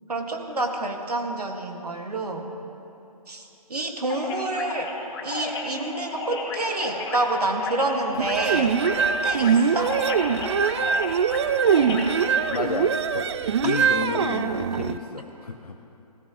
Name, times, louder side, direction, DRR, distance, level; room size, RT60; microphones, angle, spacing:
voice 1, 0.1-2.5 3.3-4.9 5.2-9.9, right 2 dB, 75° right, 3 dB, 1.9 m, -28 dB
sound 1, 4.1-12.6, left 3 dB, 35° left, 2.4 m, -34 dB
sound 2, 8.2-15.0, right 6 dB, 45° right, 0.5 m, -23 dB
voice 2, 12.5-13.3 13.6-15.8, left 4 dB, 75° left, 4 dB, 0.8 m, -31 dB
20.0 x 17.0 x 3.1 m, 2.9 s
figure-of-eight pair, 135°, 20 cm